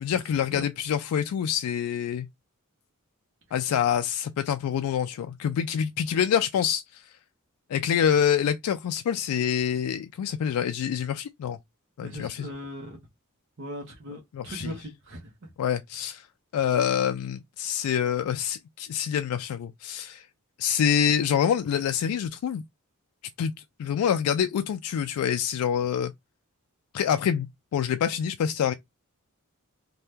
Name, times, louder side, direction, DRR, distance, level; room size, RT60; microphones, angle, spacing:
voice 1, 0.0-2.3 3.5-7.0 7.7-11.6 12.0-12.5 14.3-14.7 15.6-16.3 16.5-20.3 20.6-22.6 23.4-23.5 23.8-26.1 26.9-27.5 27.7-28.7, left 8 dB, 80° left, 0.3 m, -26 dB
voice 2, 12.0-13.0 13.6-15.5, equal, 55° right, 0.8 m, -39 dB
2.7 x 2.2 x 3.3 m
head